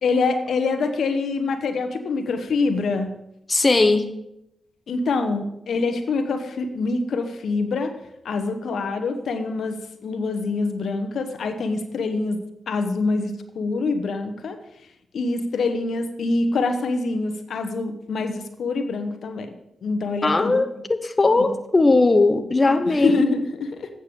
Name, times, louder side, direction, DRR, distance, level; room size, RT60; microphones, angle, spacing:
voice 1, 0.0-3.1 4.9-7.9 8.2-12.4 12.7-14.6 15.1-19.5 19.8-20.6 21.4-21.5 22.9-23.9, left 3 dB, 75° left, 7 dB, 0.8 m, -25 dB
voice 2, 3.5-4.1 20.2-23.3, left 3 dB, 35° left, 8 dB, 0.7 m, -19 dB
8.5 x 6.5 x 5.3 m, 0.83 s
supercardioid pair, 45°, 0 cm